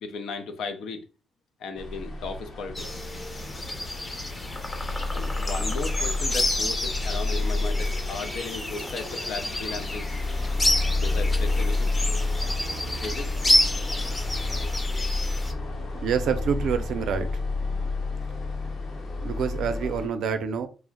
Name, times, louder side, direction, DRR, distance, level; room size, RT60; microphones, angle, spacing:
voice 1, 0.0-1.0 1.6-3.1 5.1-10.1 11.0-11.9 13.0-13.3, left 4 dB, 80° left, 0.4 m, -36 dB
sound 1, 1.8-20.1, left 2 dB, 55° left, 0.8 m, -30 dB
sound 2, 2.8-15.5, left 1 dB, 20° left, 0.6 m, -30 dB
voice 2, 16.0-17.3 19.2-20.7, right 7 dB, 70° right, 0.4 m, -27 dB
2.5 x 2.0 x 3.7 m
cardioid pair, 90°, 0 cm